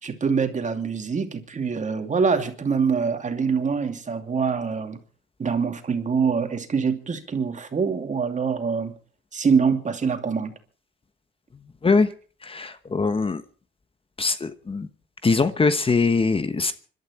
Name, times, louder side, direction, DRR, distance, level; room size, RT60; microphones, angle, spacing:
voice 1, 0.0-5.0 5.4-8.9 9.3-10.5, right 5 dB, 40° right, 2.7 m, -24 dB
voice 2, 12.4-13.4 14.2-14.9 15.2-16.7, left 4 dB, 25° left, 1.2 m, -22 dB
26.0 x 12.5 x 4.3 m
cardioid pair, 90°, 20 cm